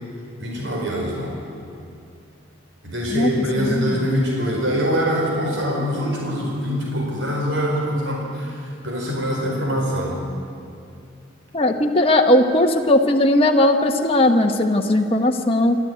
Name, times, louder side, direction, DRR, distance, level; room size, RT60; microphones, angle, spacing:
voice 1, 0.4-1.3 2.8-10.2, equal, 65° right, -1 dB, 4.6 m, -24 dB
voice 2, 3.6-4.0 11.5-15.8, left 1 dB, 30° left, 3 dB, 1.1 m, -18 dB
26.5 x 13.0 x 9.4 m, 2.5 s
head